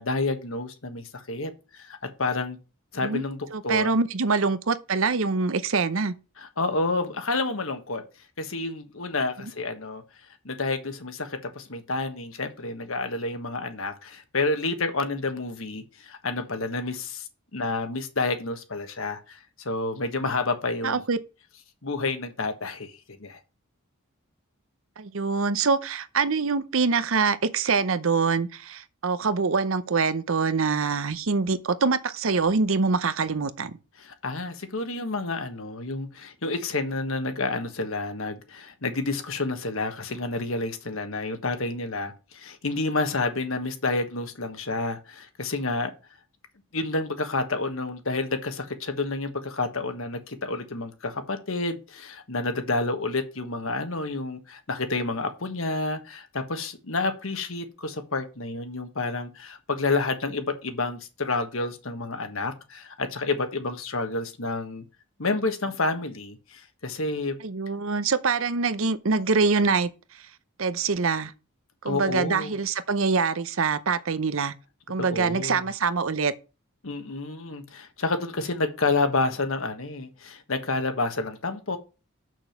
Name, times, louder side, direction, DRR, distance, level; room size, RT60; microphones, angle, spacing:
voice 1, 0.0-2.6 2.9-3.9 6.4-8.0 8.4-10.0 10.4-21.0 21.8-22.9 23.2-23.4 34.0-45.9 46.7-64.8 65.2-67.3 71.8-72.5 75.0-75.7 76.8-81.8, left 3 dB, 65° left, 1.4 m, -29 dB
voice 2, 3.5-6.1 20.8-21.2 25.0-33.8 67.4-69.9 70.6-71.3 71.8-74.5 74.9-76.3, right 4 dB, 65° right, 0.7 m, -24 dB
7.0 x 6.3 x 5.8 m
head